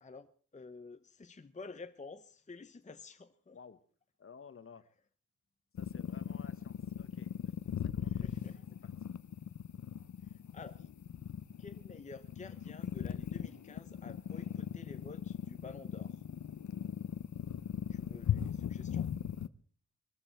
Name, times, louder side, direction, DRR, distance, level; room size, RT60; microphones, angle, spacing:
voice 1, 0.0-3.6 8.0-8.6 10.2-10.9 11.6-16.2 17.9-19.1, left 4 dB, 25° left, 8 dB, 0.8 m, -51 dB
voice 2, 4.2-4.8 5.8-7.3 7.8-8.3 8.8-9.1, left 5 dB, 45° left, 13 dB, 1.1 m, -54 dB
sound 1, 5.8-19.5, left 9 dB, 70° left, 0.7 m, -38 dB
22.0 x 14.0 x 4.5 m, 0.42 s
wide cardioid pair, 120°, 30 cm